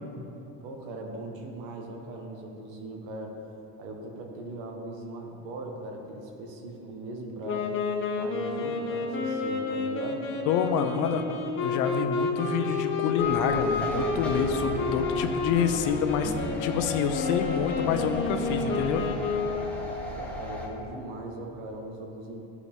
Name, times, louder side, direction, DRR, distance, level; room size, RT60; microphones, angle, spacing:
voice 1, 0.6-3.4 3.8-7.7 8.1-10.3 10.9-11.2 20.1-22.4, right 2 dB, 90° right, 1 dB, 1.4 m, -39 dB
Wind instrument woodwind instrument, 7.4-19.9, left 4 dB, 40° left, 1.1 m, -30 dB
voice 2, 10.5-11.2 11.6-16.3 16.6-19.1, left 7 dB, 70° left, 7 dB, 0.8 m, -27 dB
sound 1, 13.2-20.7, left 1 dB, 5° left, 1.3 m, -37 dB
14.0 x 4.8 x 3.6 m, 3.0 s
cardioid pair, 135°, 31 cm